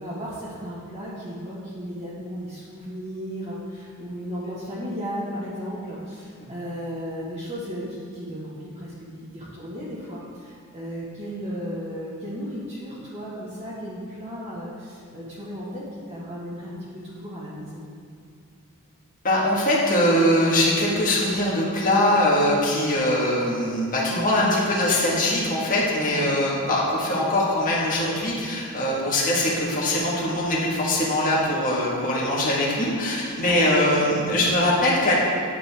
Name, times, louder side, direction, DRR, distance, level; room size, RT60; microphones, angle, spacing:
voice 1, 0.0-17.8 26.0-26.4 33.4-34.4, equal, 30° right, -8 dB, 1.5 m, -35 dB
voice 2, 19.2-35.1, left 1 dB, 40° left, -5 dB, 1.6 m, -22 dB
9.2 x 7.7 x 3.5 m, 2.2 s
head